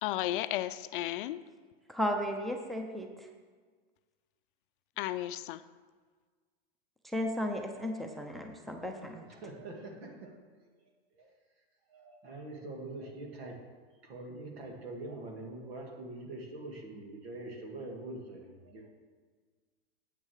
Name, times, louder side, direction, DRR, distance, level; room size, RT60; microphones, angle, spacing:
voice 1, 0.0-1.4 5.0-5.6, left 14 dB, 55° left, 13 dB, 0.5 m, -34 dB
voice 2, 1.9-3.3 7.0-9.3, equal, ahead, 3 dB, 0.7 m, -34 dB
voice 3, 9.2-10.7 11.1-11.3 11.9-13.6 14.0-18.9, right 2 dB, 75° right, 1 dB, 2.4 m, -44 dB
8.5 x 6.2 x 6.5 m, 1.5 s
hypercardioid pair, 125°, 31 cm